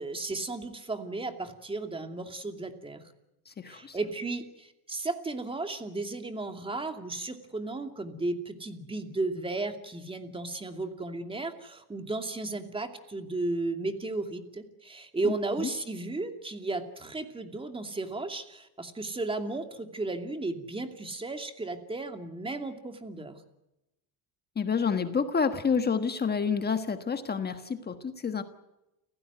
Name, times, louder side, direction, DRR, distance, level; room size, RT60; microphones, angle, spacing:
voice 1, 0.0-3.1 3.7-23.4, right 2 dB, 10° right, 6 dB, 2.6 m, -34 dB
voice 2, 3.5-4.0 15.2-15.3 15.6-15.7 24.5-28.4, left 6 dB, 20° left, 8 dB, 1.5 m, -29 dB
30.0 x 16.5 x 9.4 m, 0.93 s
cardioid pair, 140°, 46 cm